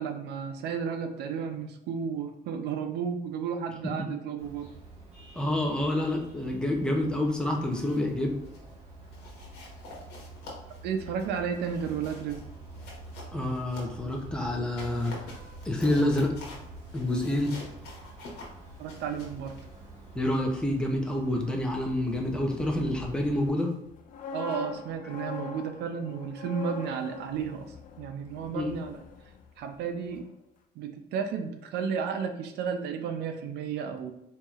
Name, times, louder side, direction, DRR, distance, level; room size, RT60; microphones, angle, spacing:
voice 1, 0.0-4.7 10.8-12.5 18.8-19.5 24.3-27.7 28.0-29.0 29.6-30.2 30.8-34.1, right 6 dB, 75° right, 7 dB, 0.5 m, -33 dB
Vehicle horn car horn honking, 4.4-23.5, right 2 dB, 40° right, 1.4 m, -47 dB
voice 2, 5.4-8.4 13.3-15.2 15.6-16.3 16.9-17.5 20.1-23.7 28.5-28.7, left 1 dB, 5° left, 0 dB, 0.7 m, -28 dB
sound 1, 7.7-8.1 8.4-8.7 9.1-14.2 14.6-20.5, left 2 dB, 75° left, 1.2 m, -48 dB
sound 2, 23.9-29.8 30.1-30.3, left 5 dB, 55° left, 0.5 m, -42 dB
4.6 x 2.7 x 2.4 m, 0.84 s
cardioid pair, 110°, 17 cm